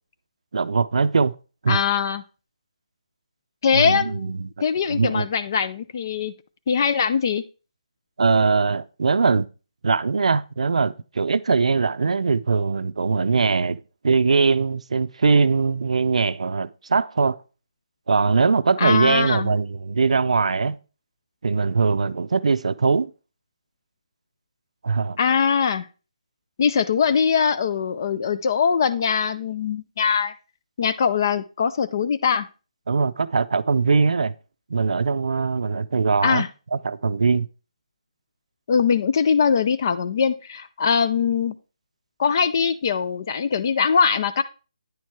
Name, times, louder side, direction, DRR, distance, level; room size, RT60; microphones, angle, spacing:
voice 1, 0.5-1.3 1.6-1.8 3.7-4.5 4.9-5.3 8.2-9.5 9.8-17.4 18.1-20.8 21.4-23.1 24.8-25.2 32.9-34.3 34.7-36.4 36.7-37.5, right 4 dB, 70° right, 0.5 m, -21 dB
voice 2, 1.7-2.2 3.6-4.3 4.6-6.3 6.7-7.4 18.8-19.5 25.2-25.9 26.6-30.3 30.8-32.5 36.2-36.5 38.7-41.5 42.2-44.4, left 6 dB, 35° left, 0.4 m, -21 dB
9.4 x 4.5 x 4.6 m
hypercardioid pair, 165°, 4 cm